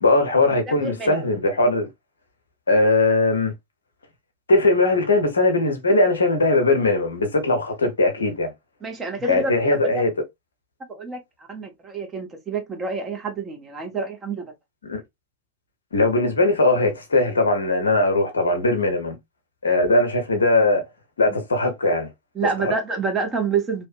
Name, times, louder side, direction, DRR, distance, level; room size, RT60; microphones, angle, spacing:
voice 1, 0.0-1.9 2.7-3.5 4.5-8.5 9.3-10.1 14.8-15.0 15.9-19.1 19.6-20.8 21.2-22.1 22.6-22.7, left 2 dB, 70° left, 0.7 m, -20 dB
voice 2, 0.8-1.3 8.8-10.0 10.9-11.2 11.5-14.4 22.4-23.9, right 4 dB, 20° right, 0.8 m, -27 dB
2.9 x 2.1 x 2.4 m
figure-of-eight pair, 90°, 0 cm